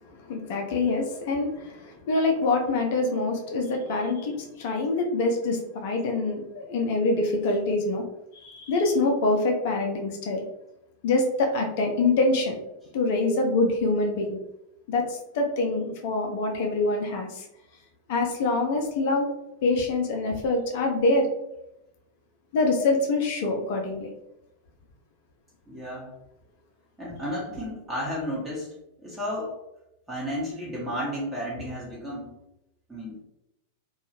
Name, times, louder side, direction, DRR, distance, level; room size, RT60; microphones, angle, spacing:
voice 1, 0.0-8.0 8.3-10.4 11.0-12.6 12.9-14.4 14.9-17.5 18.1-19.3 19.6-21.3 22.5-24.1, left 2 dB, 50° left, 2 dB, 0.5 m, -25 dB
voice 2, 25.7-26.2 27.0-28.7 29.0-29.5 30.1-32.3 32.9-33.2, equal, 10° right, -6 dB, 0.8 m, -32 dB
2.7 x 2.3 x 2.8 m, 0.87 s
figure-of-eight pair, 90°, 0 cm